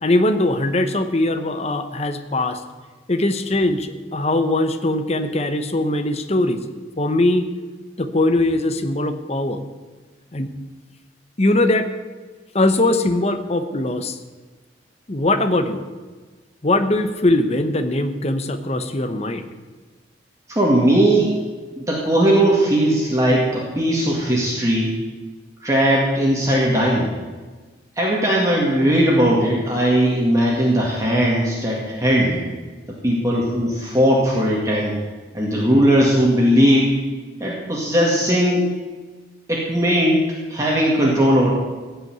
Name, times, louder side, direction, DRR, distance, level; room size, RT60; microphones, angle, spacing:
voice 1, 0.0-2.6 3.1-6.6 7.0-7.5 8.0-9.6 10.3-10.5 11.4-11.9 12.5-14.2 15.1-15.8 16.6-19.5, left 2 dB, 35° left, 8 dB, 0.9 m, -20 dB
voice 2, 20.5-21.4 21.8-24.9 25.6-27.1 28.0-32.4 32.9-35.0 35.3-36.9 37.4-38.7 39.5-40.2 40.5-41.5, equal, 15° right, -4 dB, 1.9 m, -18 dB
16.0 x 5.6 x 9.2 m, 1.4 s
head